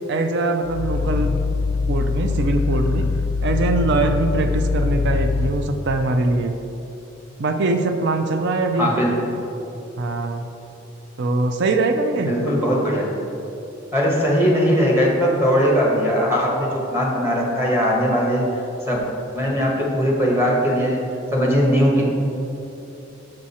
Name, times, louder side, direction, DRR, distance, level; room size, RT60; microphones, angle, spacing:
voice 1, 0.1-1.3 1.9-3.1 3.4-6.5 7.4-8.9 10.0-10.5 11.2-12.3, right 2 dB, 60° right, 6 dB, 0.4 m, -22 dB
Growling, 0.6-5.6, left 4 dB, 80° left, 0.4 m, -22 dB
voice 2, 8.8-9.1 12.3-13.1 13.9-18.5 18.9-19.0 19.3-21.0 21.3-22.0, equal, 10° right, -3 dB, 1.2 m, -19 dB
6.4 x 6.2 x 4.2 m, 2.9 s
head